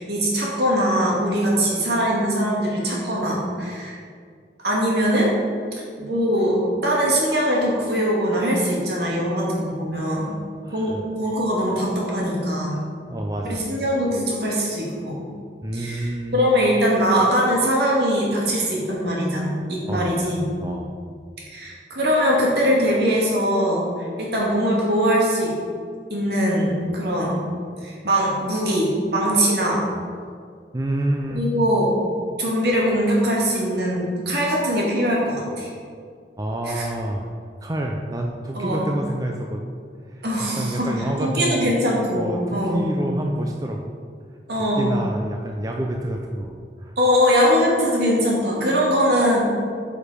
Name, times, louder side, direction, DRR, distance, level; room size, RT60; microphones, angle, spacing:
voice 1, 0.0-4.0 4.6-5.3 6.0-10.3 10.7-10.9 11.2-12.8 13.4-15.3 15.7-20.5 21.5-25.5 26.1-27.4 27.8-29.8 31.3-31.9 32.4-35.7 36.6-36.9 38.5-39.0 40.2-40.9 41.2-42.9 44.5-45.0 47.0-49.5, equal, 65° right, -3 dB, 2.1 m, -21 dB
voice 2, 10.6-11.0 12.7-12.8 13.1-13.7 15.6-16.3 19.9-20.2 20.6-20.9 30.7-31.4 36.4-37.3 37.6-39.7 40.1-41.7 42.2-44.0 44.7-47.0, right 1 dB, 20° right, 1 dB, 0.4 m, -28 dB
8.7 x 5.2 x 5.1 m, 2.1 s
head